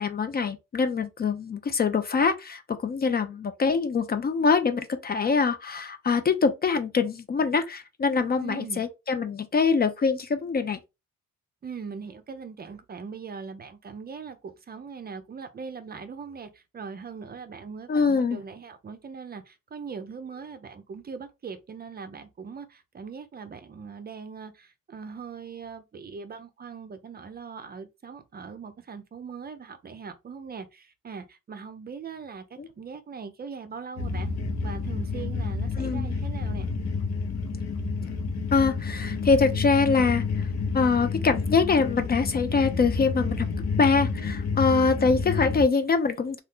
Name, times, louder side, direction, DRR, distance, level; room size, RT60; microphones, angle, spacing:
voice 1, 0.0-10.8 17.9-18.4 32.6-32.7 35.8-36.1 38.5-40.2 40.7-43.5 43.8-46.4, left 4 dB, 30° left, 0.4 m, -24 dB
voice 2, 8.4-8.8 11.6-32.4 32.8-34.3 34.6-36.7, right 5 dB, 30° right, 0.5 m, -40 dB
sound 1, 34.0-45.6, left 4 dB, 65° left, 0.8 m, -29 dB
2.7 x 2.4 x 3.5 m
cardioid pair, 90°, 30 cm